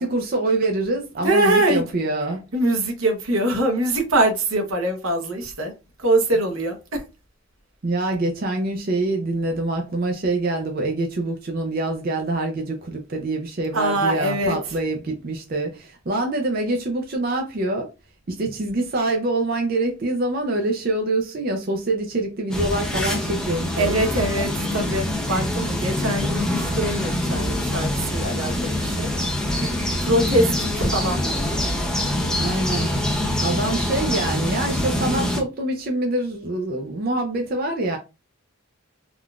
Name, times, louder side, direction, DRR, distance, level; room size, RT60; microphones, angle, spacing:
voice 1, 0.0-2.4 7.8-17.9 18.3-24.0 25.6-25.9 32.3-32.9 33.4-38.0, right 2 dB, 45° right, 0.5 m, -25 dB
voice 2, 1.2-1.9 2.5-5.7 6.0-7.0 13.7-14.6 23.8-29.7 30.0-31.2, right 1 dB, 85° right, 0.9 m, -23 dB
sound 1, 22.5-35.4, left 1 dB, 5° left, 0.5 m, -25 dB
3.6 x 2.4 x 2.3 m
head